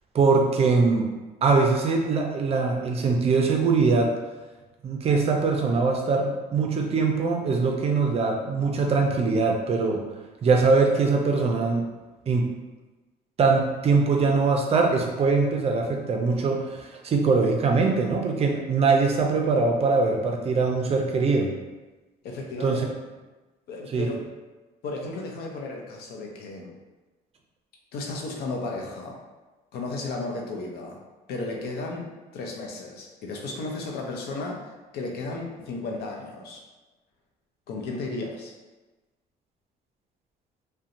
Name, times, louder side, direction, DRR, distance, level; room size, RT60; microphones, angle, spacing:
voice 1, 0.1-1.1 1.4-4.2 4.8-10.0 10.4-11.8 12.3-12.5 13.4-21.5 22.6-22.9 23.9-24.1, right 4 dB, 35° right, 2 dB, 0.4 m, -22 dB
voice 2, 22.2-22.8 23.7-24.2 24.8-26.7 27.9-29.2 29.7-31.0 31.3-36.6 37.7-38.5, left 3 dB, 70° left, 0 dB, 0.6 m, -34 dB
2.7 x 2.1 x 2.5 m, 1.2 s
cardioid pair, 110°, 17 cm